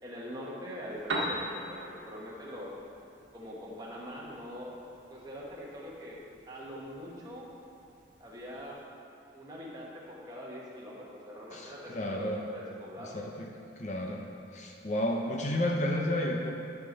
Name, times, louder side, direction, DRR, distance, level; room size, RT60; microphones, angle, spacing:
voice 1, 0.0-2.7 3.3-4.8 5.1-6.2 6.5-7.5 8.2-8.8 9.3-13.1, equal, 20° right, -5 dB, 1.3 m, -43 dB
Piano, 0.8-8.9, right 1 dB, 90° right, 1.3 m, -42 dB
voice 2, 11.5-12.4 13.0-13.5 13.8-14.2 14.5-16.5, left 1 dB, 40° left, 0 dB, 0.8 m, -32 dB
12.5 x 6.0 x 4.0 m, 2.5 s
head